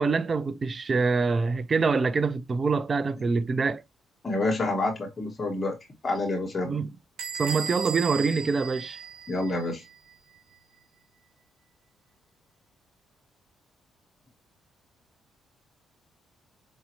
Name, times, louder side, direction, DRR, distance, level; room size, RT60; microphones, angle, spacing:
voice 1, 0.0-3.8 6.7-6.9 7.4-9.0, right 4 dB, 35° right, 0.4 m, -25 dB
voice 2, 4.2-5.8 6.0-6.8 9.3-9.8, left 2 dB, 35° left, 1.1 m, -28 dB
Bell / Squeak, 7.2-9.7, right 6 dB, 80° right, 1.3 m, -36 dB
4.9 x 2.7 x 2.8 m
cardioid pair, 90°, 0 cm